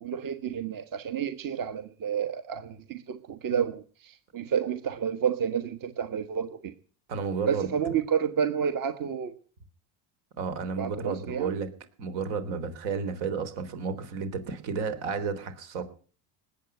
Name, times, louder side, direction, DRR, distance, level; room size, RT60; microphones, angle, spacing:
voice 1, 0.0-6.7 7.5-9.3 10.8-11.5, right 8 dB, 45° right, 10 dB, 1.5 m, -30 dB
voice 2, 7.1-7.7 10.4-11.7 12.0-15.8, right 5 dB, 80° right, 10 dB, 3.6 m, -32 dB
19.5 x 8.5 x 7.9 m, 0.42 s
supercardioid pair, 110°, 47 cm